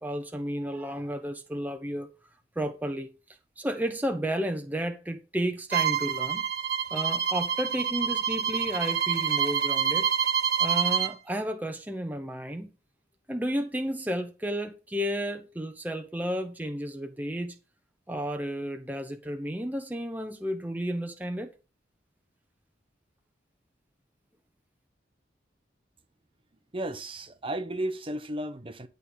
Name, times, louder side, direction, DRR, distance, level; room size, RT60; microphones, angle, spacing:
voice 1, 0.0-2.1 2.6-3.1 3.6-6.5 6.9-10.1 10.6-12.7 13.3-17.6 18.1-21.5, equal, 10° right, 0.8 m, -32 dB
Bowed string instrument, 5.7-11.1, right 8 dB, 60° right, 1.6 m, -27 dB
voice 2, 26.7-28.9, right 1 dB, 30° right, 0.9 m, -34 dB
11.0 x 3.9 x 7.0 m
head